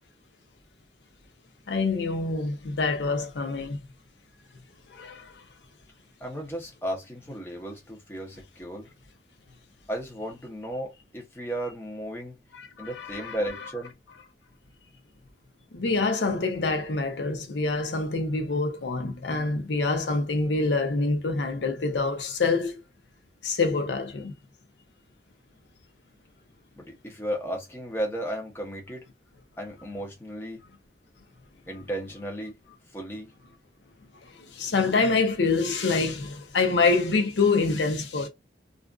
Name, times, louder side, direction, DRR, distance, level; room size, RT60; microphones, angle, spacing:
voice 1, 1.7-3.8 4.9-5.4 12.5-13.4 15.7-22.7 23.4-24.3 34.2-38.3, left 3 dB, 85° left, 0.6 m, -26 dB
voice 2, 6.2-8.9 9.9-12.3 12.8-13.9 26.8-29.0 29.6-30.6 31.7-32.6 32.9-33.3, right 1 dB, 15° left, 0.7 m, -34 dB
2.5 x 2.4 x 2.3 m
head